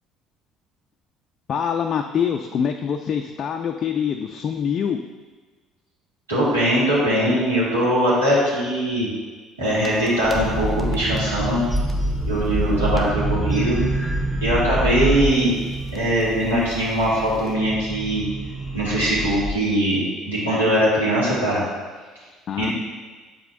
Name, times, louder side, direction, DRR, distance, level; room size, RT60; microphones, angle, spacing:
voice 1, 1.5-5.0 22.5-22.7, left 7 dB, 45° left, 4 dB, 0.3 m, -24 dB
voice 2, 6.3-9.1 9.6-11.6 12.3-13.8 14.4-15.5 15.9-18.2 18.7-21.6 22.6-22.7, right 1 dB, 85° right, -8 dB, 1.7 m, -21 dB
sound 1, 9.7-19.5, right 1 dB, 10° right, 0.9 m, -26 dB
7.6 x 4.9 x 2.5 m, 1.4 s
figure-of-eight pair, 55°, 0 cm